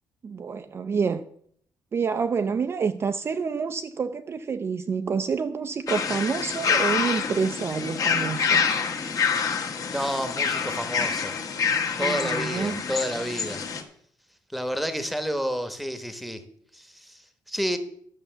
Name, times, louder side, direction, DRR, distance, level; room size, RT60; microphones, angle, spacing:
voice 1, 0.2-1.2 1.9-8.7 12.0-12.8, right 5 dB, 30° right, 8 dB, 0.5 m, -28 dB
sound 1, 5.9-13.8, left 6 dB, 45° left, 1.5 m, -27 dB
voice 2, 9.9-11.3 12.0-13.6 14.5-16.4 16.7-17.8, equal, ahead, 9 dB, 1.1 m, -30 dB
11.0 x 6.8 x 6.8 m, 0.65 s
cardioid pair, 150°, 8 cm